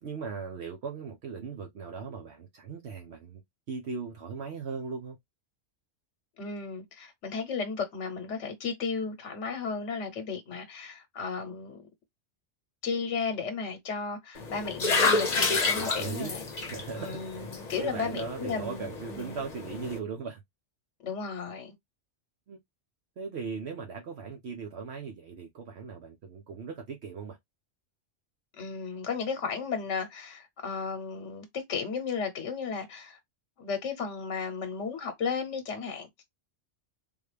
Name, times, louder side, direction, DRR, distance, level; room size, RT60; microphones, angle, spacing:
voice 1, 0.0-3.4 3.7-5.2 15.7-16.3 16.7-17.5 17.8-20.4 22.5-22.6 23.2-27.4, right 5 dB, 65° right, 1.0 m, -38 dB
voice 2, 6.4-11.8 12.8-16.4 17.0-19.4 21.0-21.7 28.6-33.2 33.6-36.2, left 5 dB, 80° left, 1.1 m, -34 dB
sound 1, 14.4-20.0, left 3 dB, 40° left, 0.8 m, -30 dB
3.7 x 2.3 x 3.2 m
omnidirectional pair, 1.2 m